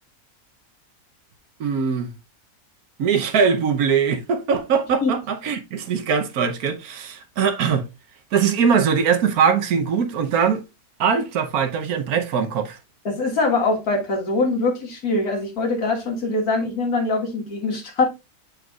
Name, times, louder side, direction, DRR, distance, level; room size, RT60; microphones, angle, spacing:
voice 1, 1.6-2.1 3.0-7.9 8.3-10.6 11.0-12.8, right 6 dB, 80° right, 1.3 m, -21 dB
voice 2, 13.1-18.1, left 3 dB, 75° left, 2.1 m, -23 dB
7.8 x 5.1 x 2.3 m
omnidirectional pair, 1.6 m